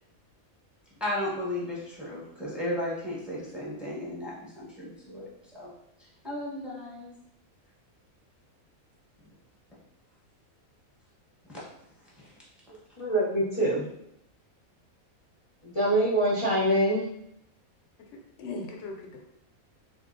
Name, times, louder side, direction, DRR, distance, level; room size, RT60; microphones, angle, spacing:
voice 1, 1.0-5.3 5.5-5.7 6.0-7.1 11.5-11.6 12.2-12.3, left 1 dB, ahead, -7 dB, 0.7 m, -35 dB
voice 2, 13.0-13.8 15.7-17.0, right 1 dB, 40° left, -7 dB, 0.4 m, -24 dB
voice 3, 18.1-19.2, left 3 dB, 65° left, 1 dB, 0.8 m, -39 dB
3.5 x 2.6 x 2.5 m, 0.77 s
omnidirectional pair, 1.5 m